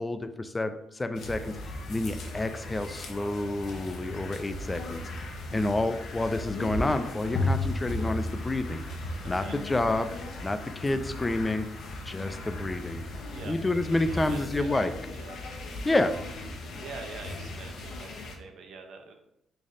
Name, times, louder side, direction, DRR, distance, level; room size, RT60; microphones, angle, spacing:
voice 1, 0.0-5.0 5.5-8.8 9.2-10.1 10.4-11.7 12.1-13.0 13.4-14.9 15.8-16.2, left 2 dB, 20° left, 9 dB, 0.3 m, -29 dB
sound 1, 1.1-18.4, left 2 dB, 70° left, 0.6 m, -36 dB
voice 2, 9.2-9.6 13.3-13.6 13.9-14.8 15.1-15.4 16.8-19.1, right 4 dB, 75° right, 4 dB, 0.6 m, -45 dB
3.2 x 2.4 x 4.0 m, 0.82 s
cardioid pair, 90°, 0 cm